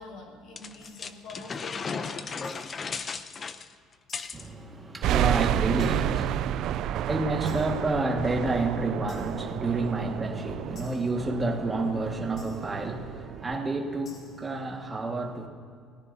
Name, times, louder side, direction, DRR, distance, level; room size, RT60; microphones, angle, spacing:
voice 1, 0.0-2.2, left 3 dB, 60° left, 1 dB, 4.6 m, -45 dB
sound 1, 0.6-4.5, left 5 dB, 25° left, 0.5 m, -35 dB
sound 2, 0.8-1.3 2.4-2.9 4.1-4.6 5.8-6.3 7.5-8.0 9.1-9.5 10.8-11.3 12.4-12.8 14.1-14.6, left 3 dB, 40° left, 2.9 m, -55 dB
voice 2, 4.3-15.5, right 2 dB, 15° right, 1 dB, 1.6 m, -30 dB
sound 3, 5.0-13.6, right 12 dB, 50° right, 0.3 m, -30 dB
29.0 x 18.0 x 2.7 m, 2.2 s
cardioid pair, 175°, 0 cm